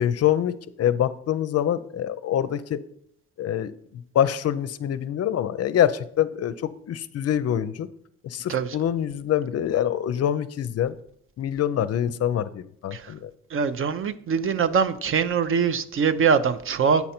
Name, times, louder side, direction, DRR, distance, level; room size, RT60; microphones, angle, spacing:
voice 1, 0.0-2.8 3.4-6.5 6.9-7.9 8.2-10.9 11.4-13.3, left 10 dB, 55° left, 0.5 m, -25 dB
voice 2, 13.5-17.1, right 6 dB, 45° right, 0.6 m, -23 dB
8.1 x 5.4 x 4.3 m
cardioid pair, 90°, 30 cm